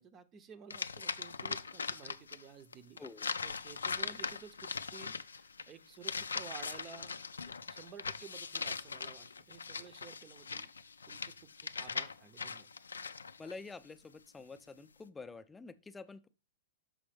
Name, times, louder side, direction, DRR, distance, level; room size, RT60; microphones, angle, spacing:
voice 1, 0.0-3.0 3.4-7.2 7.5-10.7 11.1-12.7, right 7 dB, 30° right, 13 dB, 0.6 m, -53 dB
sound 1, 0.7-2.4 2.7-13.5, left 5 dB, 85° left, 0.4 m, -40 dB
voice 2, 3.0-3.3 13.4-16.3, left 4 dB, 10° left, 11 dB, 0.5 m, -48 dB
6.3 x 5.2 x 3.3 m, 0.31 s
hypercardioid pair, 110°, 0 cm